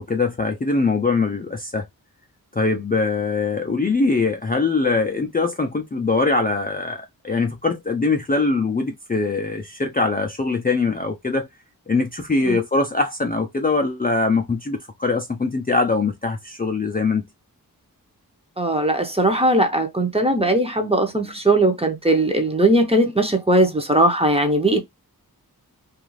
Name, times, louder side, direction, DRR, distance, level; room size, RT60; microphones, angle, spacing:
voice 1, 0.0-1.8 2.5-11.5 11.9-17.2, left 3 dB, 25° left, 0.4 m, -22 dB
voice 2, 18.6-24.8, right 1 dB, 15° right, 0.7 m, -19 dB
2.4 x 2.4 x 3.0 m
wide cardioid pair, 60°, 37 cm